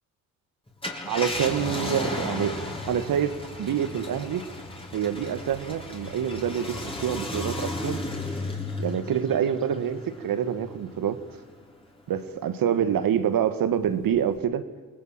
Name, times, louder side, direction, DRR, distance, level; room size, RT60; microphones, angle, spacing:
Car, 0.7-11.5 12.0-12.1 14.1-14.4, left 2 dB, 15° left, 4.7 m, -34 dB
voice 1, 1.1-2.6 2.9-4.4 4.9-8.0 8.8-11.2 12.1-14.6, right 9 dB, 60° right, 11 dB, 2.0 m, -26 dB
29.0 x 19.5 x 7.7 m, 1.4 s
supercardioid pair, 75°, 39 cm